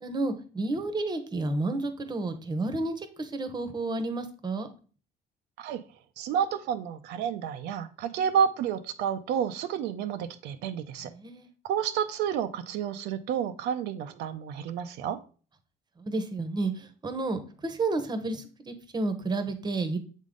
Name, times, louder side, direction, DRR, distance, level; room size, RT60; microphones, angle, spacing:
voice 1, 0.0-4.7 11.0-11.5 16.0-20.0, right 2 dB, 25° right, 8 dB, 0.9 m, -31 dB
voice 2, 6.2-11.1 11.6-15.2, right 8 dB, 85° right, 8 dB, 0.5 m, -30 dB
7.4 x 3.6 x 3.7 m, 0.39 s
cardioid pair, 110°, 17 cm